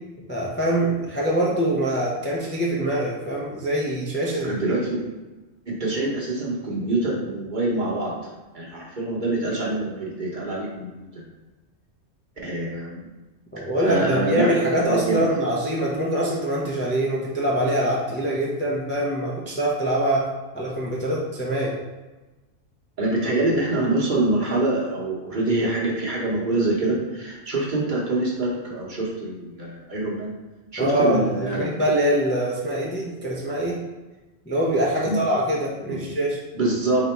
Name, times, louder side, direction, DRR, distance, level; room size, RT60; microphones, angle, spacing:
voice 1, 0.3-4.5 13.5-21.8 30.8-31.3 31.5-33.8 34.5-36.4, right 1 dB, 15° left, -5 dB, 0.5 m, -24 dB
voice 2, 4.4-5.1 5.7-11.2 12.4-13.1 13.8-15.3 23.0-30.3 30.7-31.7 35.0-35.2 35.9-36.1 36.5-37.0, right 2 dB, 45° right, -4 dB, 1.1 m, -25 dB
4.0 x 2.9 x 4.5 m, 1.2 s
omnidirectional pair, 1.2 m